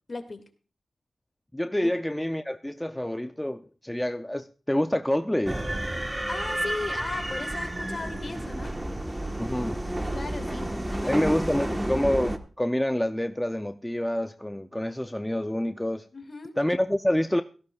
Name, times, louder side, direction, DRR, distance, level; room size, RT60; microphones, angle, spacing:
voice 1, 0.1-0.4 1.8-1.9 6.3-8.7 10.1-11.2 11.5-11.8 16.1-16.5, left 3 dB, 45° left, 2.2 m, -37 dB
voice 2, 1.5-5.6 9.4-9.8 11.1-16.1 16.6-17.4, left 1 dB, 10° left, 0.5 m, -27 dB
sound 1, 5.5-12.4, right 1 dB, 20° right, 1.3 m, -31 dB
17.5 x 14.5 x 2.4 m
cardioid pair, 60°, 0 cm